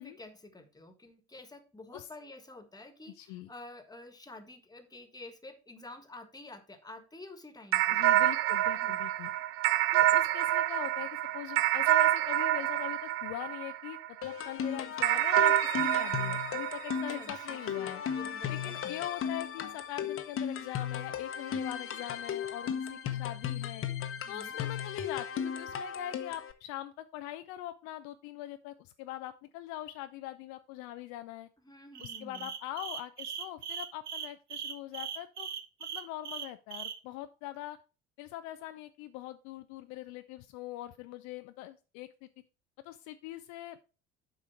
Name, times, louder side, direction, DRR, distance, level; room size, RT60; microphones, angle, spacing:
voice 1, 0.0-8.2 8.7-9.1 16.9-18.7 24.2-24.6 31.6-32.5, left 2 dB, 10° left, 9 dB, 1.5 m, -50 dB
voice 2, 3.2-3.5 7.9-9.3 9.9-18.0 18.5-23.9 24.3-31.5 32.0-35.5 35.9-37.8 38.2-42.3 42.8-43.8, left 14 dB, 55° left, 10 dB, 0.5 m, -42 dB
sound 1, 7.7-14.3 15.0-17.8, right 13 dB, 40° right, 0.4 m, -27 dB
sound 2, 14.2-26.5, left 8 dB, 40° left, 1.0 m, -36 dB
sound 3, 31.9-37.0, right 8 dB, 80° right, 0.8 m, -39 dB
7.8 x 5.0 x 4.5 m, 0.34 s
figure-of-eight pair, 60°, 34 cm